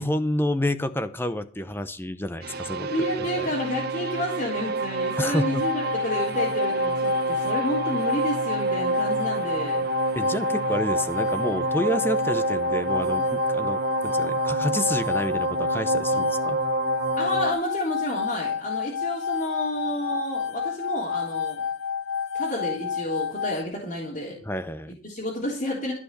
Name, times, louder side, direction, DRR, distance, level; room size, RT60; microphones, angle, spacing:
voice 1, 0.0-2.9 3.2-3.5 5.2-5.6 10.2-16.6 24.4-24.9, left 1 dB, 10° left, 12 dB, 0.7 m, -29 dB
sound 1, 2.4-17.5, right 4 dB, 50° right, 0.9 m, -28 dB
voice 2, 2.8-9.9 17.2-21.6 22.3-24.4 25.0-25.9, left 1 dB, 40° left, -4 dB, 3.5 m, -30 dB
sound 2, 5.6-23.6, left 7 dB, 85° left, 0.7 m, -30 dB
14.0 x 6.2 x 6.8 m, 0.42 s
head